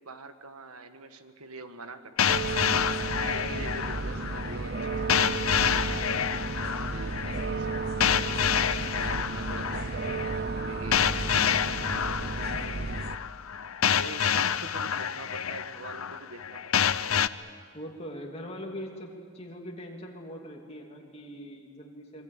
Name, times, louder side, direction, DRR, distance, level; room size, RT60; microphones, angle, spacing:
voice 1, 0.0-2.5 3.2-8.3 8.9-12.6 14.0-17.1, right 2 dB, 80° right, 9 dB, 1.5 m, -44 dB
sound 1, 2.2-17.3, left 8 dB, 75° left, 0.7 m, -28 dB
sound 2, 2.3-13.2, right 3 dB, 45° right, 0.9 m, -33 dB
voice 2, 3.4-4.1 17.7-22.2, equal, 25° left, 0 dB, 3.0 m, -42 dB
26.0 x 24.0 x 8.7 m, 2.1 s
head